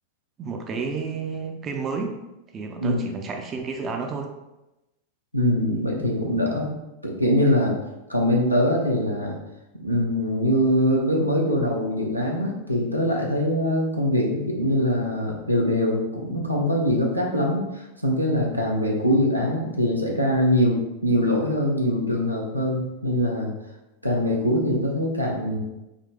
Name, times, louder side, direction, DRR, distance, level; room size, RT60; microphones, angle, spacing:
voice 1, 0.4-2.2 2.5-4.3, right 4 dB, 25° right, 3 dB, 0.4 m, -31 dB
voice 2, 5.3-6.7 7.0-7.7 8.1-9.4 9.8-23.5 24.0-25.6, equal, 90° right, -1 dB, 0.7 m, -23 dB
3.8 x 2.6 x 3.4 m, 0.98 s
figure-of-eight pair, 90°, 0 cm